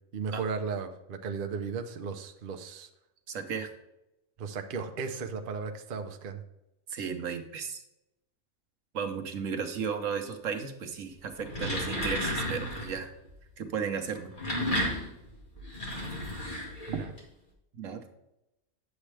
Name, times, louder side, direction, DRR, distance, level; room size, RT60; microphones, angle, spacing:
voice 1, 0.1-2.9 4.4-6.4 16.9-17.1, right 5 dB, 50° right, 5 dB, 0.8 m, -35 dB
voice 2, 3.3-3.7 6.9-7.8 8.9-13.1 13.6-14.3 17.7-18.0, right 6 dB, 70° right, 6 dB, 1.3 m, -34 dB
sound 1, 11.3-13.0 14.1-17.2, left 1 dB, 35° left, 2.2 m, -33 dB
9.6 x 7.3 x 3.3 m, 0.89 s
omnidirectional pair, 1.4 m